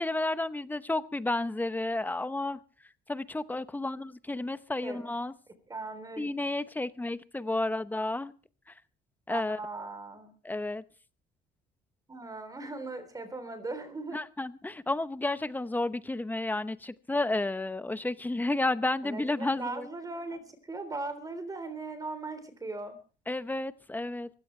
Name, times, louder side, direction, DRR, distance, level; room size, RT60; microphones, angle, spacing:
voice 1, 0.0-2.6 3.1-5.3 6.2-8.3 9.3-9.6 10.4-10.8 14.1-19.9 23.3-24.3, left 2 dB, 10° left, 14 dB, 0.8 m, -31 dB
voice 2, 5.7-6.3 9.3-10.3 12.1-14.2 19.0-23.0, right 3 dB, 20° right, 10 dB, 3.6 m, -39 dB
23.0 x 16.5 x 3.3 m, 0.36 s
cardioid pair, 110°, 17 cm